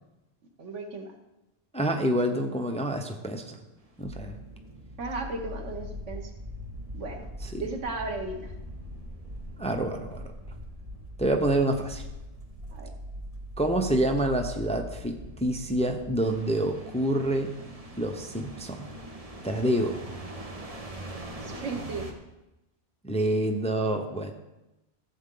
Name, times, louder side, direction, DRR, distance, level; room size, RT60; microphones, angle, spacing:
voice 1, 0.6-1.2 5.0-6.3 6.9-7.3 7.6-8.5 12.7-12.9 21.4-22.1, right 3 dB, 80° right, 4 dB, 1.5 m, -35 dB
voice 2, 1.7-3.6 4.0-4.4 7.4-7.6 9.6-10.2 11.2-12.0 13.6-17.5 18.0-18.9 19.4-20.0 23.0-24.3, right 1 dB, 5° left, 4 dB, 0.6 m, -27 dB
sound 1, 3.9-22.1, equal, 30° right, 1.2 m, -41 dB
14.5 x 7.9 x 3.9 m, 0.97 s
omnidirectional pair, 1.2 m